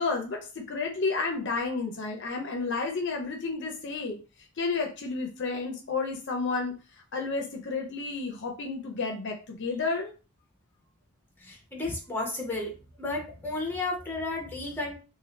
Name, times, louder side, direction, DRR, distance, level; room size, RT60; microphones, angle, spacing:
voice 1, 0.0-4.2 4.6-6.7 7.1-10.1, left 4 dB, 55° left, 3 dB, 0.6 m, -31 dB
voice 2, 11.4-12.7 13.0-15.0, left 2 dB, 10° left, -1 dB, 0.8 m, -32 dB
2.6 x 2.5 x 3.1 m, 0.34 s
head